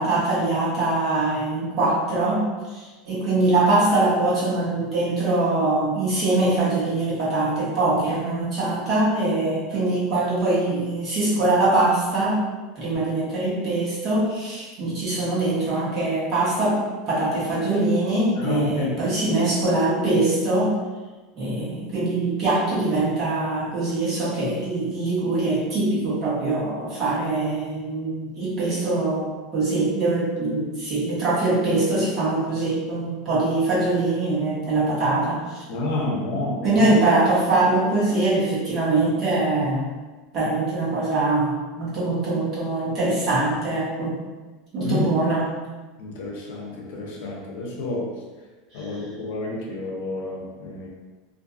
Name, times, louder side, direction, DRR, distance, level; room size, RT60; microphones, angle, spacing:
voice 1, 0.0-12.4 12.8-16.8 17.1-20.8 21.3-35.6 36.6-39.9 40.3-44.2 44.7-45.4 48.7-48.8, right 2 dB, 35° right, -8 dB, 1.1 m, -23 dB
voice 2, 18.4-19.1 35.7-36.9 44.8-45.1 46.0-48.1 48.7-50.9, left 2 dB, 75° left, -1 dB, 0.6 m, -29 dB
2.5 x 2.2 x 2.5 m, 1.3 s
supercardioid pair, 145°, 0 cm